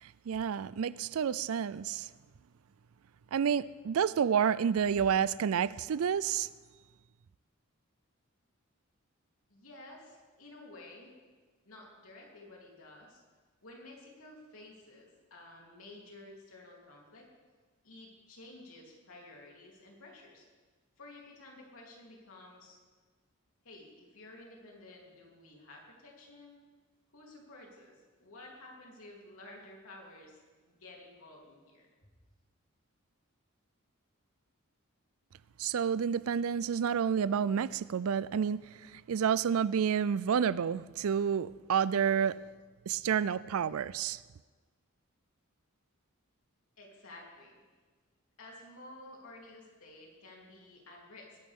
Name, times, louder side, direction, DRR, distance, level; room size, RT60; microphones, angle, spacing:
voice 1, 0.0-2.1 3.3-6.5 35.6-38.6 38.9-42.4 42.9-44.2, right 7 dB, 75° right, 0.4 m, -29 dB
voice 2, 9.5-11.1 11.6-13.2 13.6-17.3 17.8-20.4 21.0-22.8 23.6-26.6 27.1-30.4 30.7-31.9 46.8-47.5 48.4-51.4, left 2 dB, 75° left, 3.4 m, -52 dB
20.5 x 11.5 x 3.7 m
head